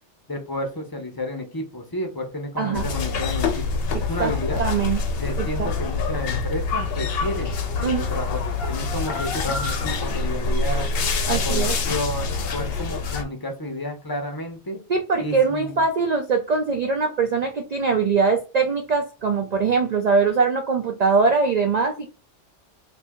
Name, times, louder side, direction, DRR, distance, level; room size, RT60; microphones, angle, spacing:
voice 1, 0.3-4.6 5.2-10.8 11.3-14.8 15.2-15.8, left 1 dB, 25° left, 3 dB, 0.6 m, -31 dB
voice 2, 2.6-2.9 4.2-5.0 5.4-5.7 7.8-8.1 11.3-11.8 14.9-22.1, right 4 dB, 65° right, 4 dB, 0.4 m, -22 dB
sound 1, 2.7-13.2, left 4 dB, 60° left, 0.8 m, -26 dB
2.7 x 2.6 x 3.5 m, 0.32 s
omnidirectional pair, 1.2 m